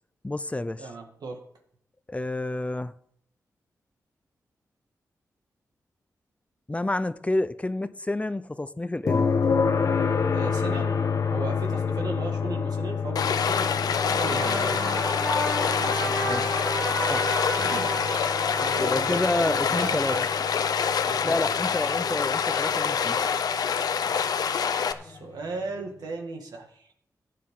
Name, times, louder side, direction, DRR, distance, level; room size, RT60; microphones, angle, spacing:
voice 1, 0.2-0.9 2.1-2.9 6.7-9.3 16.3-16.4 17.0-17.3 17.6-17.7 18.8-20.2 21.2-23.2, left 2 dB, 20° left, 0.6 m, -29 dB
voice 2, 0.8-1.4 10.3-14.8 15.8-16.6 17.6-20.3 21.1-21.5 24.1-24.6 25.0-26.9, right 3 dB, 85° right, 2.0 m, -37 dB
sound 1, 9.1-22.9 25.2-25.3, left 5 dB, 65° left, 1.3 m, -29 dB
Stream, 13.2-24.9, left 7 dB, 80° left, 0.7 m, -26 dB
sound 2, 13.8-20.2, right 2 dB, 45° right, 2.7 m, -33 dB
15.0 x 9.4 x 3.8 m
cardioid pair, 60°, 7 cm